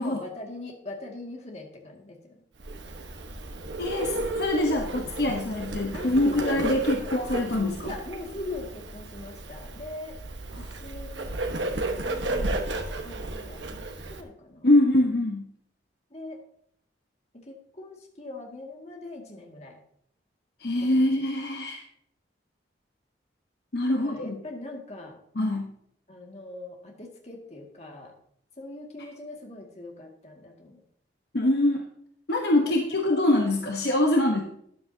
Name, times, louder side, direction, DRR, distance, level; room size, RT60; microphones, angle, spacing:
voice 1, 0.0-2.3 5.9-7.2 7.8-10.2 10.6-11.3 12.0-14.7 16.1-16.4 17.5-19.8 20.9-21.1 24.0-25.2 26.1-28.1 28.6-30.8 32.7-32.8, left 2 dB, 35° left, 0 dB, 2.1 m, -41 dB
Bird, 2.6-14.2, right 2 dB, 80° right, 1.3 m, -33 dB
voice 2, 3.8-7.9 10.5-10.6 14.6-15.5 20.6-21.8 23.7-24.4 25.3-25.7 31.3-31.8 32.3-34.4, left 1 dB, 60° left, 2 dB, 1.1 m, -24 dB
13.0 x 10.0 x 2.8 m, 0.69 s
head